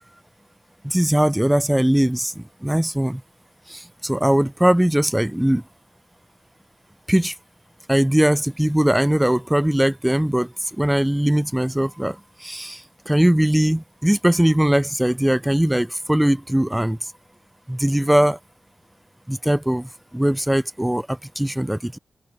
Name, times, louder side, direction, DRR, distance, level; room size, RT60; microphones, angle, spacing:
voice 1, 0.8-3.2 3.7-5.6 7.1-7.3 7.9-17.0 17.7-18.4 19.3-22.0, right 1 dB, 5° right, 1.0 m, -20 dB
open air
wide cardioid pair, 130°, 0 cm